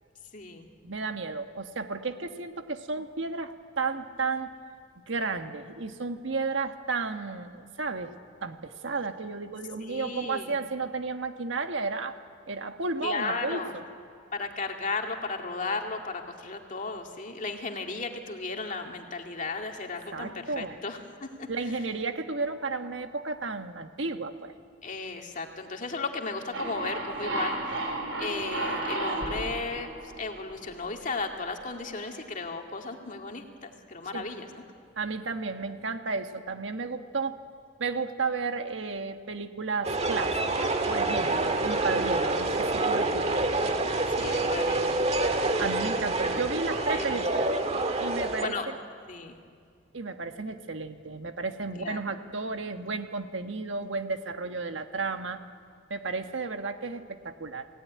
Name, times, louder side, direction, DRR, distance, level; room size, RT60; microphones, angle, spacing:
voice 1, 0.3-0.7 9.8-10.6 13.0-13.8 14.3-21.7 24.8-27.8 28.2-34.6 44.2-45.0 46.8-47.2 48.4-48.8 49.1-49.4 51.8-52.0, left 3 dB, 40° left, 3 dB, 2.2 m, -35 dB
voice 2, 0.8-4.5 5.1-8.1 8.4-12.2 12.5-13.8 20.1-20.8 21.5-24.5 34.1-34.3 35.0-37.4 37.8-43.3 45.6-47.5 48.0-48.5 49.9-55.4 55.9-57.7, right 4 dB, 70° right, 7 dB, 1.5 m, -33 dB
sound 1, 26.5-31.0, right 2 dB, 90° right, 4.2 m, -33 dB
sound 2, 39.8-48.5, right 2 dB, 35° right, 1.7 m, -27 dB
27.5 x 18.0 x 9.6 m, 2.2 s
head